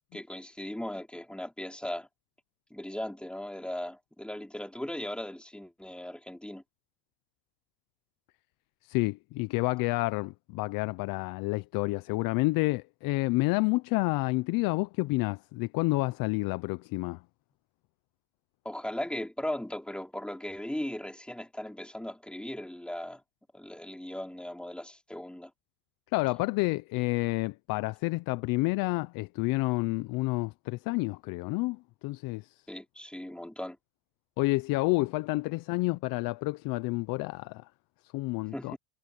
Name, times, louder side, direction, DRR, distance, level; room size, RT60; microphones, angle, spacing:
voice 1, 0.1-2.1 2.7-6.6 18.6-23.2 23.5-25.5 32.7-33.8 38.5-38.8, left 1 dB, ahead, 5.4 m, -38 dB
voice 2, 8.8-17.2 26.1-32.5 34.4-37.6 38.1-38.8, left 23 dB, 50° left, 0.8 m, -29 dB
supercardioid pair, 115°, 44 cm